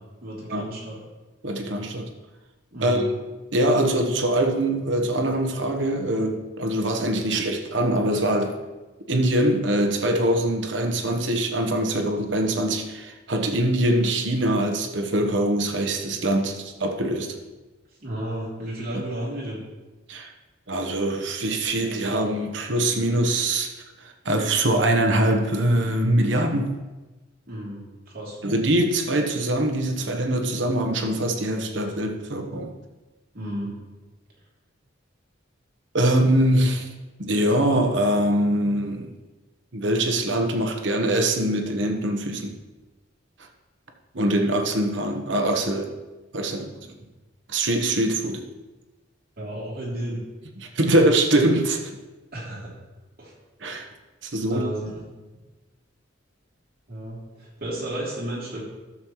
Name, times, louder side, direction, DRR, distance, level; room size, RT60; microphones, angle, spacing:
voice 1, 0.2-1.0 2.7-3.1 18.0-19.6 27.5-28.4 33.3-33.7 49.4-50.2 52.3-52.7 53.2-53.3 54.4-55.0 56.9-58.6, right 1 dB, 50° right, -5 dB, 3.1 m, -33 dB
voice 2, 1.4-2.1 2.8-3.1 3.5-8.6 9.1-17.4 20.1-20.3 20.7-23.7 24.0-26.8 28.4-32.7 35.9-36.9 37.2-39.1 39.7-42.5 44.1-45.9 46.3-46.9 47.5-48.4 50.6-51.9 53.6-53.8 54.2-54.6, right 1 dB, 65° right, 4 dB, 1.1 m, -23 dB
12.5 x 7.1 x 3.1 m, 1.2 s
head